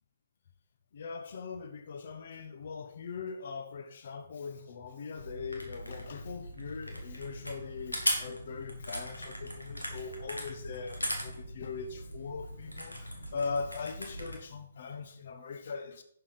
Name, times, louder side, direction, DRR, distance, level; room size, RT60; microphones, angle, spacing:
voice 1, 0.9-16.0, left 5 dB, 50° left, 9 dB, 1.0 m, -40 dB
sound 1, 5.1-14.4, equal, 85° left, 2.1 m, -39 dB
11.0 x 6.9 x 4.2 m, 0.65 s
figure-of-eight pair, 130°, 0 cm